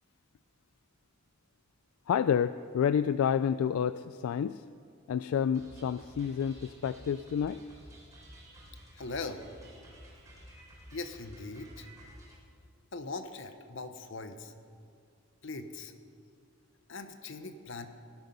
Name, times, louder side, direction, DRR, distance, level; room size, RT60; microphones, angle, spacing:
voice 1, 2.1-4.6 5.1-7.6, left 8 dB, 80° left, 14 dB, 0.3 m, -29 dB
sound 1, 5.5-12.4, equal, 15° right, 4.0 m, -52 dB
voice 2, 8.9-9.5 10.9-11.9 12.9-14.5 15.4-15.9 16.9-17.9, left 3 dB, 60° left, 9 dB, 1.0 m, -40 dB
17.5 x 12.0 x 5.5 m, 2.3 s
head